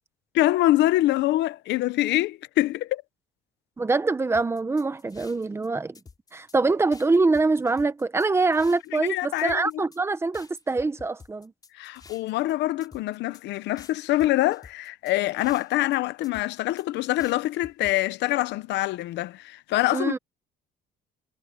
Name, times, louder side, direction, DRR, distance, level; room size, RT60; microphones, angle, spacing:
voice 1, 0.3-3.0 8.9-9.8 11.7-20.1, left 16 dB, 75° left, 0.8 m, -25 dB
voice 2, 3.8-6.0 6.3-11.5 19.9-20.2, right 3 dB, 15° right, 1.0 m, -24 dB
sound 1, 4.3-5.7 5.9-6.6 6.9-9.1 9.4-10.0 10.3-12.5 12.8-13.4 13.8-16.0 16.2-16.8 17.2-17.9, left 4 dB, 20° left, 5.7 m, -50 dB
cardioid pair, 165°, 18 cm